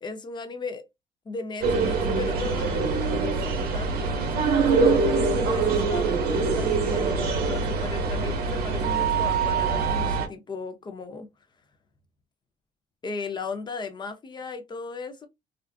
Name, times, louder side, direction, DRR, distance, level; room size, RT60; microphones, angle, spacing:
voice 1, 0.0-0.8 1.3-11.3 13.0-15.3, left 4 dB, 25° left, 0.6 m, -36 dB
sound 1, 1.6-10.3, right 4 dB, 65° right, 0.7 m, -24 dB
2.5 x 2.3 x 2.3 m
cardioid pair, 110°, 17 cm